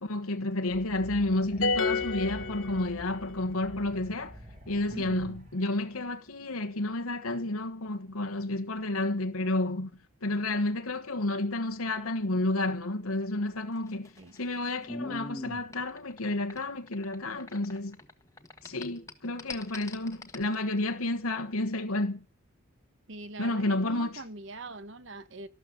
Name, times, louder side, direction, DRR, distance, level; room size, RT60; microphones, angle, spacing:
voice 1, 0.0-4.4 4.7-9.9 10.2-18.0 18.6-22.2 23.4-24.2, left 2 dB, 85° left, 1.4 m, -31 dB
sound 1, 0.7-5.9, equal, 35° right, 3.9 m, -47 dB
sound 2, 1.6-3.3, left 3 dB, 65° left, 1.4 m, -30 dB
voice 2, 4.9-5.4 14.2-14.3 23.1-25.5, right 2 dB, 55° right, 1.1 m, -43 dB
sound 3, 13.8-18.1 18.4-20.5, left 2 dB, 15° left, 1.4 m, -42 dB
13.5 x 12.5 x 7.5 m
head